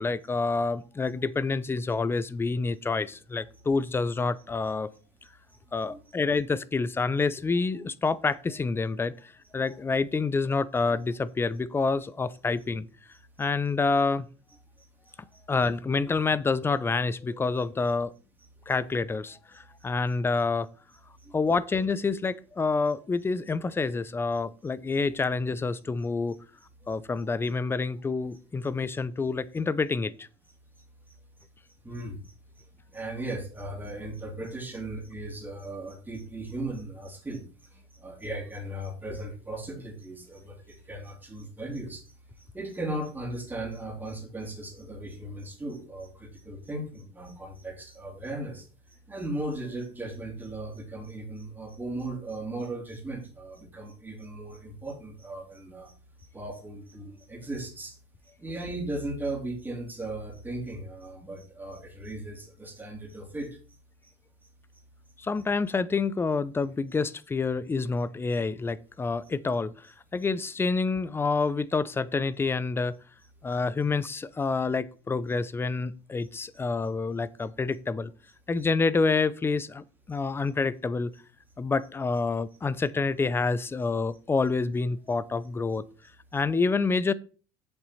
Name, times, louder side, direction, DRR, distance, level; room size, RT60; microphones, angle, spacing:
voice 1, 0.0-4.9 5.7-12.9 13.4-14.3 15.5-18.1 18.7-20.7 21.3-26.4 26.9-30.3 65.2-69.9 70.1-72.9 73.4-78.1 78.5-81.1 81.6-85.8 86.3-87.1, left 4 dB, 15° left, 0.5 m, -28 dB
voice 2, 31.8-32.3 32.9-42.0 42.4-58.0 58.4-63.6 64.0-64.1 68.3-68.5 69.2-69.3 73.5-73.6, right 1 dB, 15° right, 2.8 m, -37 dB
7.9 x 7.0 x 4.1 m
supercardioid pair, 105°, 14 cm